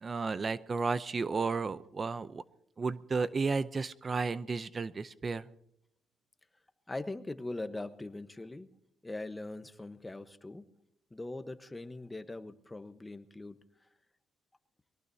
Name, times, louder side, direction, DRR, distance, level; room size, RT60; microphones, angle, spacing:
voice 1, 0.0-2.4 2.8-5.5, right 4 dB, 35° right, 15 dB, 0.6 m, -33 dB
voice 2, 6.9-8.7 9.0-10.7 11.1-13.6, left 2 dB, 15° left, 10 dB, 1.1 m, -41 dB
23.0 x 18.5 x 2.8 m, 0.74 s
cardioid pair, 90°, 0 cm